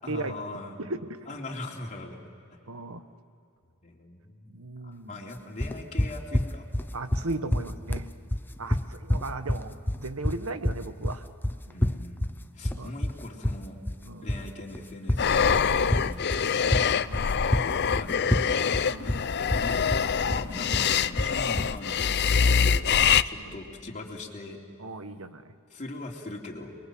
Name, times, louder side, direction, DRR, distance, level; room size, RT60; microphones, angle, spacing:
voice 1, 0.0-0.8 1.3-2.2 3.8-4.5 4.8-6.7 8.6-8.7 11.7-15.5 15.9-16.8 17.4-18.8 19.0-19.1 19.5-19.9 20.2-24.6 25.7-26.7, left 2 dB, 35° left, -1 dB, 3.5 m, -41 dB
voice 2, 0.8-1.2 2.7-3.0 4.5-5.1 6.9-8.1 8.6-11.2 11.7-11.9 12.7-12.9 14.1-14.3 15.7-16.0 17.1-17.4 18.8-19.2 22.5-22.7 23.4-23.5 24.8-25.4, right 2 dB, 65° right, 9 dB, 1.4 m, -37 dB
sound 1, 5.6-22.6, left 1 dB, 10° left, 0.6 m, -29 dB
sound 2, 15.2-23.2, left 7 dB, 50° left, 0.6 m, -24 dB
29.5 x 22.5 x 7.8 m, 2.5 s
head